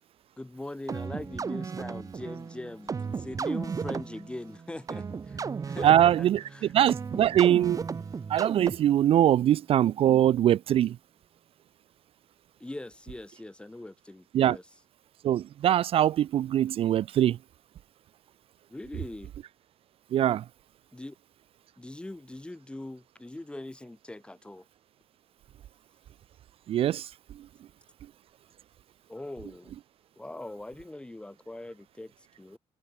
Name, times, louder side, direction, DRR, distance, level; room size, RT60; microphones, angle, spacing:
voice 1, 0.4-6.7 9.4-9.5 12.6-14.6 18.7-19.3 20.9-21.2 21.8-24.7 29.1-29.7 30.2-32.1 32.4-32.6, left 1 dB, 10° left, 1.0 m, -41 dB
sound 1, 0.9-9.1, right 5 dB, 30° right, 1.3 m, -35 dB
voice 2, 5.8-6.4 6.7-7.8 8.3-10.9 14.3-14.6 15.2-17.4 20.1-20.4 26.7-27.1, right 11 dB, 55° right, 0.4 m, -22 dB
cardioid pair, 130°, 11 cm